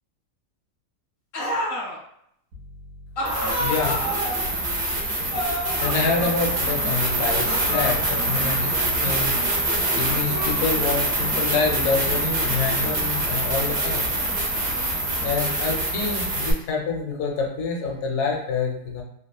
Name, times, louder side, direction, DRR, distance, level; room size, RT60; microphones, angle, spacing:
sound 1, 1.3-2.0 3.2-4.5 5.3-6.8 7.3-9.0 10.0-11.1, equal, 55° left, 0.6 m, -31 dB
sound 2, 2.5-2.6 3.2-16.5, right 1 dB, 80° right, 1.1 m, -25 dB
voice 1, 3.6-4.0 5.8-9.4 10.0-14.1 15.2-19.0, left 5 dB, 75° left, 0 dB, 1.1 m, -27 dB
3.3 x 2.0 x 2.2 m, 0.73 s
omnidirectional pair, 1.7 m